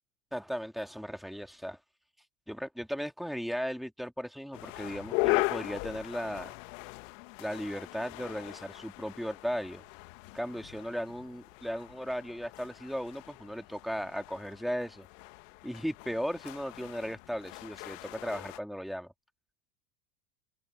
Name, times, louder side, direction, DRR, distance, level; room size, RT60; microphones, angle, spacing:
voice 1, 0.3-1.8 2.5-6.5 7.4-9.8 10.3-15.1 15.6-19.1, equal, ahead, 3.2 m, -36 dB
sound 1, 4.5-18.6, left 27 dB, 55° left, 1.8 m, -38 dB
hypercardioid pair, 95°, 46 cm